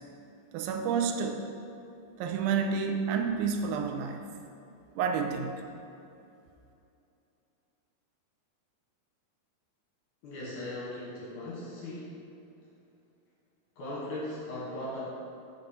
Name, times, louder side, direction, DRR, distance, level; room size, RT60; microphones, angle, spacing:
voice 1, 0.5-1.4 2.2-4.3 5.0-5.6, right 6 dB, 85° right, 3 dB, 2.1 m, -29 dB
voice 2, 10.2-12.1 13.8-15.0, left 1 dB, 60° left, -6 dB, 2.4 m, -38 dB
6.0 x 5.3 x 6.5 m, 2.7 s
omnidirectional pair, 4.7 m